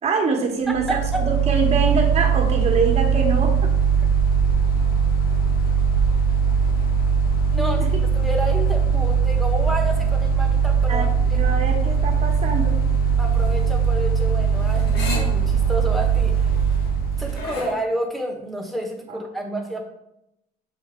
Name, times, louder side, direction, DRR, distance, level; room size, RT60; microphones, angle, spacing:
voice 1, 0.0-3.7 7.6-8.0 10.9-12.8 19.1-19.6, right 4 dB, 40° right, 2 dB, 1.3 m, -25 dB
Mechanical fan, 0.7-17.5, right 6 dB, 60° left, 1.0 m, -20 dB
voice 2, 0.7-1.2 7.5-7.8 8.1-11.1 13.2-16.5 17.2-19.8, right 1 dB, ahead, 0 dB, 1.2 m, -29 dB
sound 1, 12.3-17.7, left 3 dB, 80° left, 1.7 m, -36 dB
7.1 x 2.7 x 5.0 m, 0.82 s
cardioid pair, 110°, 17 cm